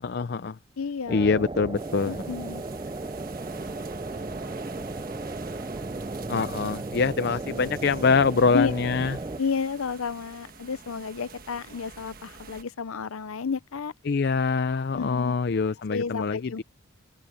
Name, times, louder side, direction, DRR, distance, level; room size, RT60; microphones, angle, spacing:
voice 1, 0.0-0.6 1.1-2.2 6.3-9.2 14.1-16.6, left 4 dB, 50° left, 0.4 m, -24 dB
voice 2, 0.8-1.5 2.1-2.6 8.5-8.7 9.4-13.9 14.9-15.6 15.9-16.6, left 5 dB, 90° left, 0.7 m, -31 dB
sound 1, 1.1-9.4, right 2 dB, 25° right, 0.4 m, -35 dB
sound 2, 1.7-12.6, right 4 dB, 45° right, 1.4 m, -45 dB
open air
head